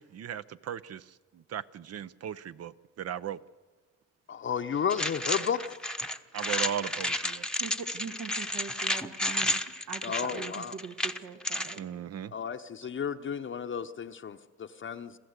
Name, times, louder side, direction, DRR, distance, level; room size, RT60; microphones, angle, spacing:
voice 1, 0.0-3.4 6.3-7.5 11.8-12.3, right 9 dB, 55° right, 0.7 m, -37 dB
voice 2, 4.3-5.8 10.0-10.8 12.3-15.2, left 7 dB, 40° left, 0.8 m, -33 dB
sound 1, 4.9-11.8, left 1 dB, 5° left, 0.9 m, -32 dB
voice 3, 7.6-9.6 9.9-11.0 11.2-11.9, right 6 dB, 75° right, 1.7 m, -41 dB
27.0 x 14.5 x 8.1 m
cardioid pair, 90°, 30 cm